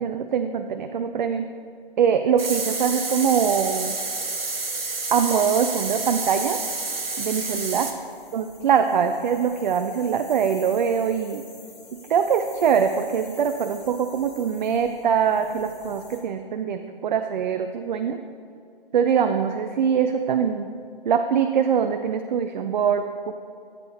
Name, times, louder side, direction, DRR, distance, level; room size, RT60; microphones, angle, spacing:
voice 1, 0.0-1.5 2.0-4.0 5.1-6.6 7.2-7.9 8.3-11.5 11.9-18.2 18.9-20.7 21.0-23.3, right 7 dB, 55° right, 7 dB, 0.5 m, -23 dB
sound 1, 2.4-7.9, right 3 dB, 80° right, 1.3 m, -29 dB
sound 2, 2.9-16.2, left 3 dB, 20° left, 1.4 m, -47 dB
13.5 x 8.3 x 2.8 m, 2.4 s
figure-of-eight pair, 130°, 29 cm